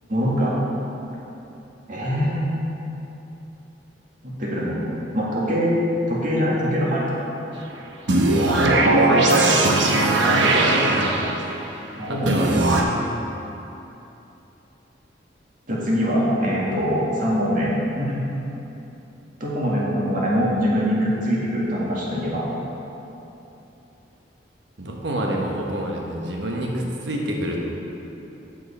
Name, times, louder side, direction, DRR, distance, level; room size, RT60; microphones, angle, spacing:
voice 1, 0.1-0.6 1.9-2.5 4.2-4.8 5.1-5.8 6.1-7.1 10.3-10.6 11.9-12.3 15.7-17.7 18.0-18.2 19.4-22.4, equal, 50° right, -5 dB, 1.9 m, -23 dB
sound 1, 8.1-11.6 12.3-12.8, right 2 dB, 90° right, 0.9 m, -19 dB
voice 2, 8.5-9.9 10.4-11.1 12.1-12.5 24.8-27.6, right 1 dB, 75° right, -1 dB, 1.2 m, -26 dB
7.9 x 7.7 x 4.3 m, 3.0 s
head